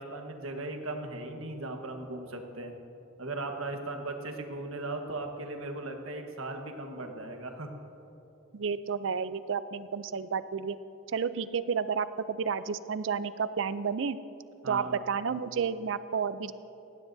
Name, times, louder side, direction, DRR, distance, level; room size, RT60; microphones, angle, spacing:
voice 1, 0.0-2.7 3.2-7.7 14.6-15.0, right 2 dB, 85° right, 4 dB, 1.3 m, -37 dB
voice 2, 8.5-10.8 11.1-14.2 14.7-16.5, right 6 dB, 65° right, 14 dB, 0.4 m, -31 dB
18.5 x 16.5 x 2.7 m, 2.9 s
head